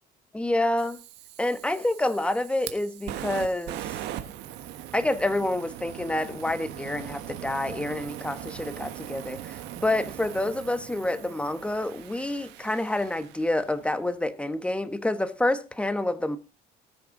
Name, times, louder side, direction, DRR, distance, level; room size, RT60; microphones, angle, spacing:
voice 1, 0.3-1.0 1.4-3.9 4.9-16.4, left 1 dB, 5° left, 1.3 m, -28 dB
Fire, 0.8-13.9, right 12 dB, 90° right, 1.5 m, -40 dB
19.5 x 6.8 x 3.9 m
cardioid pair, 110°, 17 cm